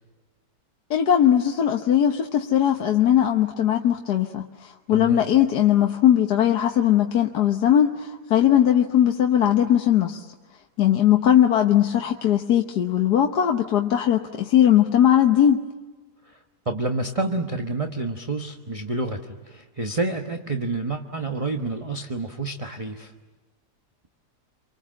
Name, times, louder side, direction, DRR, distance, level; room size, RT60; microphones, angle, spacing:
voice 1, 0.9-10.2 10.8-15.6, left 10 dB, 70° left, 4 dB, 1.6 m, -19 dB
voice 2, 4.9-5.2 16.3-16.4 16.6-23.1, right 2 dB, 20° right, 5 dB, 1.1 m, -29 dB
28.5 x 24.0 x 7.6 m, 1.3 s
omnidirectional pair, 1.8 m